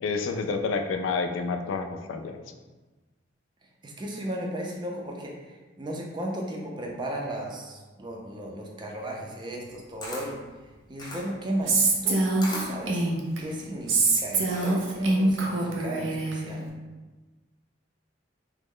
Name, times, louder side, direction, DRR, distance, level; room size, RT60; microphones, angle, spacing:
voice 1, 0.0-2.4, left 4 dB, 80° left, 5 dB, 0.3 m, -29 dB
voice 2, 3.8-10.4 10.9-12.2 12.5-13.0 13.4-16.7, right 1 dB, 25° right, -1 dB, 0.4 m, -35 dB
Camera, 9.6-15.1, left 1 dB, 20° left, 0.6 m, -40 dB
Female speech woman speaking, 11.7-13.4 13.9-16.4, right 3 dB, 85° right, 0.5 m, -24 dB
3.0 x 2.0 x 3.6 m, 1.2 s
head